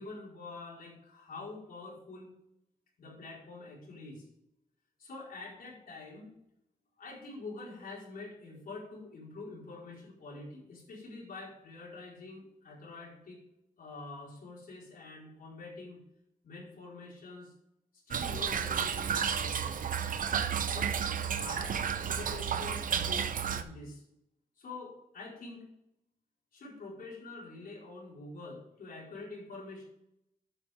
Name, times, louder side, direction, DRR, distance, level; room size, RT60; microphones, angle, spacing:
voice 1, 0.0-2.3 3.0-4.3 5.0-6.3 7.0-13.4 13.8-16.0 16.4-17.5 18.1-19.8 20.7-20.9 21.2-24.0 24.6-25.7 26.5-29.8, left 3 dB, 70° left, -4 dB, 4.6 m, -46 dB
Toilet flush / Trickle dribble, 18.1-23.6, right 7 dB, 60° right, 0.7 m, -32 dB
11.0 x 8.5 x 3.6 m, 0.79 s
wide cardioid pair, 160°, 16 cm